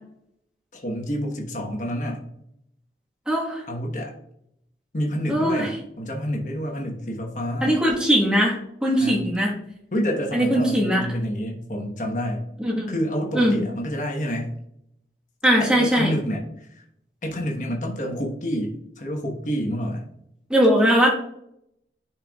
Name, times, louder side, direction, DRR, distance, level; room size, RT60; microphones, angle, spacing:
voice 1, 0.7-2.3 3.7-4.1 4.9-7.7 9.0-9.2 9.9-12.4 12.9-14.5 15.6-16.8 17.2-20.0, equal, 45° left, 0 dB, 1.2 m, -28 dB
voice 2, 3.3-3.6 5.3-5.7 7.6-9.5 10.3-11.0 12.6-12.9 13.3-13.5 15.4-16.1 20.5-21.1, equal, 5° right, -4 dB, 1.4 m, -20 dB
10.5 x 4.6 x 2.4 m, 0.76 s
head